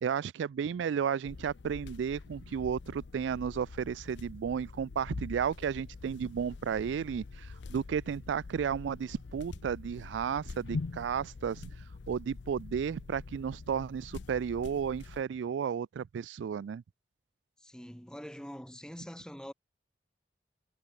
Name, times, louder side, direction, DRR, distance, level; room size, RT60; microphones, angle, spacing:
voice 1, 0.0-11.7 12.1-16.8, right 7 dB, 90° right, 0.3 m, -33 dB
sound 1, 1.2-15.2, left 3 dB, 80° left, 0.6 m, -44 dB
voice 2, 17.6-19.5, equal, 5° left, 2.1 m, -44 dB
head